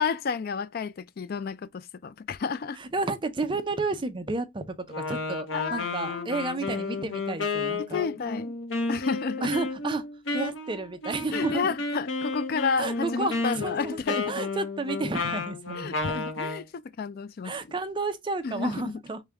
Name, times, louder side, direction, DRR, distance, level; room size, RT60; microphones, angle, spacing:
voice 1, 0.0-2.8 5.5-6.3 6.7-7.0 7.8-8.5 8.9-9.5 11.3-14.3 15.7-16.6 17.0-17.5 18.4-18.9, left 5 dB, 50° left, 0.4 m, -31 dB
voice 2, 2.8-8.1 9.4-10.0 10.3-11.7 12.8-16.0 17.4-19.2, right 3 dB, 25° right, 0.5 m, -32 dB
Wind instrument woodwind instrument, 4.9-16.6, left 3 dB, 85° left, 0.9 m, -32 dB
4.7 x 2.2 x 3.3 m
head